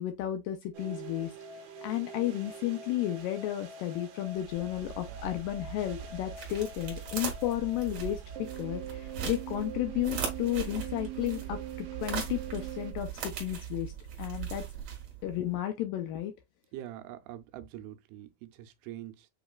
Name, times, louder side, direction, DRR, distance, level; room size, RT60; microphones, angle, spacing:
voice 1, 0.0-1.3 1.8-8.2 8.6-13.9 14.2-14.6 15.2-16.3, left 13 dB, 85° left, 2.0 m, -33 dB
sound 1, 0.7-12.9, right 6 dB, 70° right, 2.4 m, -44 dB
sound 2, 4.3-15.4, right 8 dB, 55° right, 2.4 m, -39 dB
voice 2, 16.7-19.3, right 13 dB, 90° right, 2.6 m, -44 dB
7.2 x 3.0 x 2.3 m
omnidirectional pair, 4.5 m